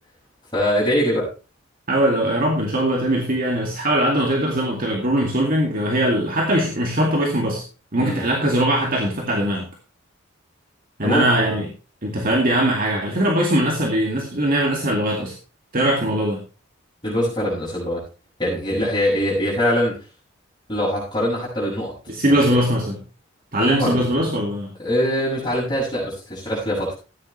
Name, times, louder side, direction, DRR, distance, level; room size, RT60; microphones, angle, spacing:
voice 1, 0.5-1.3 8.0-8.2 11.0-11.6 17.0-18.0 18.4-20.0 20.7-21.9 22.3-22.6 23.6-24.0 24.8-26.9, equal, 20° left, -8 dB, 6.6 m, -23 dB
voice 2, 1.9-7.6 7.9-9.7 11.0-11.7 12.0-15.4 15.7-16.4 22.1-23.0 23.5-24.7, right 1 dB, 45° right, -1 dB, 2.3 m, -21 dB
15.5 x 9.4 x 3.3 m, 0.34 s
head